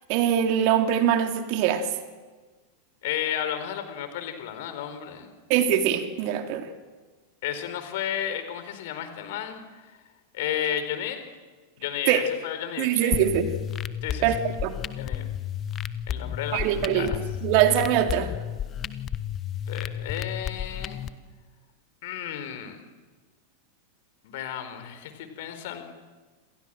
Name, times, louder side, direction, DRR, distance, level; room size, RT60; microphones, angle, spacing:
voice 1, 0.1-1.9 5.5-6.7 12.1-12.3 12.8-13.5 14.2-14.7 16.5-17.1 17.4-18.3, right 10 dB, 45° right, 6 dB, 3.0 m, -23 dB
voice 2, 3.0-5.3 7.4-9.9 10.3-11.2 11.8-13.1 14.0-14.3 15.0-15.3 16.1-17.2 19.7-21.1 22.0-22.8 24.2-25.8, left 10 dB, 50° left, 9 dB, 4.5 m, -33 dB
sound 1, 13.1-21.1, left 9 dB, 30° left, 1.4 m, -32 dB
28.5 x 27.5 x 7.7 m, 1.3 s
figure-of-eight pair, 90°, 0 cm